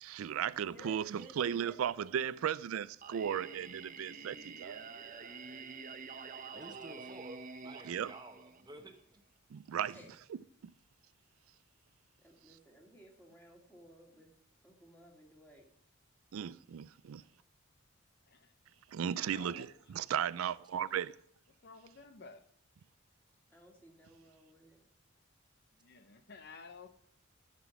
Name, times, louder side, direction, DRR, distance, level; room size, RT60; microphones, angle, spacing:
voice 1, 0.0-4.9 7.8-8.1 9.5-10.0 16.3-17.2 18.9-21.1, right 9 dB, 85° right, 0.4 m, -36 dB
voice 2, 0.6-2.4 7.1-7.4 9.9-10.1 12.2-14.3 14.6-15.6 23.5-24.8, equal, 10° left, 2.4 m, -57 dB
Singing, 3.0-9.0, right 5 dB, 40° right, 0.8 m, -48 dB
voice 3, 6.5-9.2, right 1 dB, 20° right, 1.1 m, -51 dB
voice 4, 19.3-20.1 20.9-21.0 21.6-22.5 25.8-26.9, left 4 dB, 50° left, 0.7 m, -53 dB
12.5 x 6.0 x 6.0 m
head